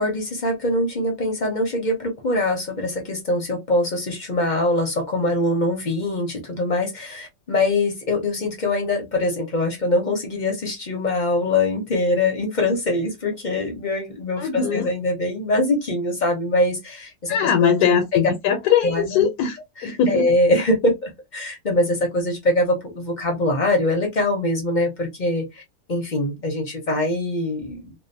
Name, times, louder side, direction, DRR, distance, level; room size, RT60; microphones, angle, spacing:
voice 1, 0.0-18.2 18.8-19.3 19.8-25.6 25.9-27.9, left 1 dB, 45° left, 0.6 m, -23 dB
voice 2, 14.4-14.9 17.3-20.3, left 7 dB, 85° left, 1.1 m, -21 dB
2.7 x 2.0 x 2.6 m
omnidirectional pair, 1.6 m